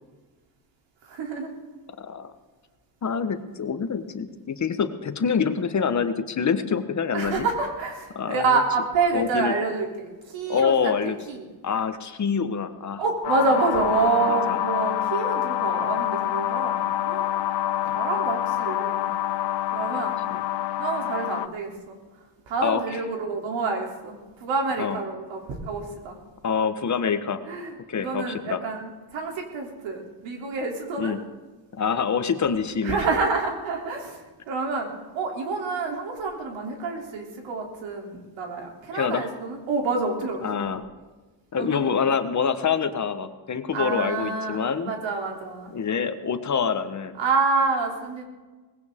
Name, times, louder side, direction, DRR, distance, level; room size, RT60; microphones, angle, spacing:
voice 1, 1.1-1.5 7.1-11.5 13.0-17.3 17.9-19.1 19.7-20.2 20.8-22.0 22.5-26.2 27.5-31.2 32.8-40.6 41.6-41.9 43.7-44.6 44.8-45.7 47.2-48.2, right 4 dB, 85° right, 1 dB, 3.3 m, -28 dB
voice 2, 2.0-2.3 3.0-7.5 8.1-8.6 9.1-9.5 10.5-11.2 11.6-13.0 14.3-14.6 17.8-17.9 20.3-20.4 22.6-22.8 24.8-25.0 26.4-27.4 27.9-28.6 31.0-31.2 31.7-33.1 38.9-39.3 40.4-40.9 41.5-44.9 45.7-47.2, left 6 dB, 40° left, 9 dB, 1.2 m, -26 dB
sound 1, 13.2-21.5, left 12 dB, 65° left, 0.7 m, -26 dB
20.0 x 16.0 x 3.7 m, 1.3 s
cardioid pair, 100°, 44 cm